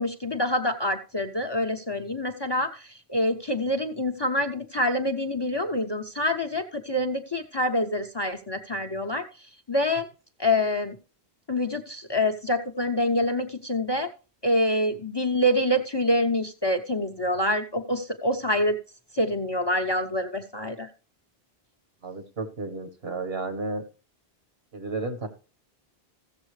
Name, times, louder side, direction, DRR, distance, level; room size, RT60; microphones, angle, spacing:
voice 1, 0.0-9.2 9.7-10.1 10.4-10.9 11.5-14.1 14.4-18.8 19.1-20.9, left 1 dB, 30° left, 6 dB, 0.6 m, -26 dB
voice 2, 22.0-23.8 24.7-25.3, right 3 dB, 70° right, 8 dB, 1.6 m, -32 dB
15.0 x 7.2 x 3.2 m, 0.34 s
omnidirectional pair, 1.1 m